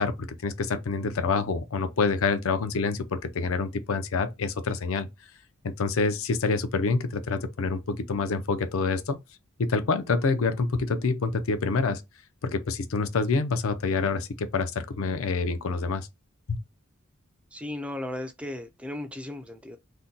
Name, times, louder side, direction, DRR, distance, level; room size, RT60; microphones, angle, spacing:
voice 1, 0.0-5.1 5.6-9.2 9.6-12.0 12.4-16.1 16.5-16.6, left 4 dB, 70° left, 0.5 m, -27 dB
voice 2, 17.5-19.8, left 1 dB, 5° right, 0.3 m, -36 dB
2.7 x 2.2 x 3.7 m
head